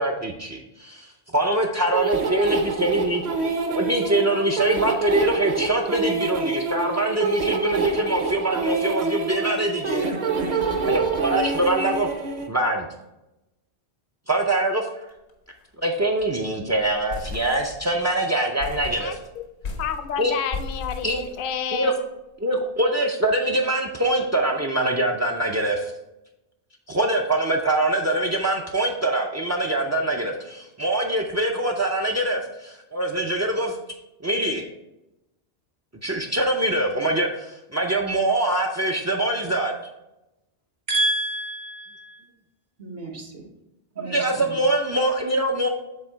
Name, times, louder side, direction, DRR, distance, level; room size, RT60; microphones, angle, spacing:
voice 1, 0.0-10.1 10.8-12.1 12.5-12.9 14.3-15.1 15.8-19.2 20.2-20.4 21.0-21.2 21.7-21.9 22.4-25.9 26.9-33.8 34.2-34.6 36.0-39.7 44.0-45.7, right 1 dB, 30° right, 2 dB, 0.3 m, -24 dB
sound 1, 1.9-12.5, right 4 dB, 45° right, 0.8 m, -26 dB
sound 2, 15.1-15.3 15.6-15.7 16.0-16.4 16.7-18.1 18.6-21.9, left 4 dB, 85° left, 1.2 m, -36 dB
voice 2, 19.8-21.9, left 7 dB, 60° left, 9 dB, 0.7 m, -29 dB
voice 3, 40.9-41.8 42.8-43.4 44.0-44.4, right 1 dB, 65° right, 2 dB, 1.4 m, -27 dB
7.5 x 3.7 x 4.5 m, 0.93 s
omnidirectional pair, 1.1 m